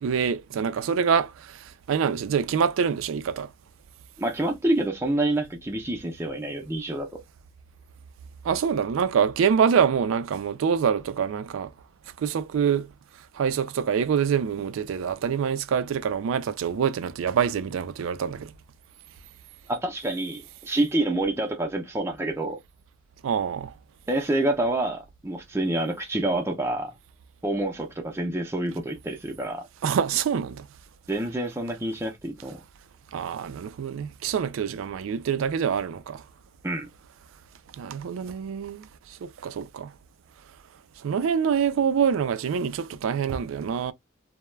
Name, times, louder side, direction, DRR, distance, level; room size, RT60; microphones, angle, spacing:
voice 1, 0.0-3.5 8.4-11.7 12.2-12.9 13.3-18.5 23.2-23.7 29.8-30.7 33.1-36.2 37.8-38.9 39.2-39.9 41.0-43.9, right 7 dB, 80° right, 0.3 m, -25 dB
voice 2, 4.2-7.2 19.7-22.6 24.1-27.0 27.4-29.7 31.1-32.6 36.6-36.9, right 1 dB, 15° right, 0.4 m, -27 dB
2.2 x 2.1 x 3.1 m
head